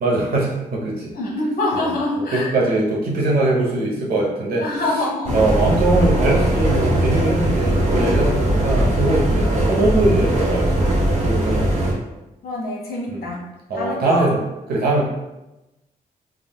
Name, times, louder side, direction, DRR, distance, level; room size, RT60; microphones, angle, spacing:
voice 1, 0.0-1.1 1.7-1.9 2.2-4.7 5.3-11.9 13.1-13.3 13.7-14.4 14.7-15.1, right 2 dB, 70° right, -2 dB, 0.9 m, -21 dB
voice 2, 1.1-2.5 4.6-5.4 12.4-13.4 13.7-14.3, left 2 dB, 65° left, -2 dB, 1.0 m, -25 dB
sound 1, 5.2-11.9, right 1 dB, 45° right, 1.2 m, -19 dB
3.5 x 2.3 x 2.3 m, 0.95 s
cardioid pair, 75°, 16 cm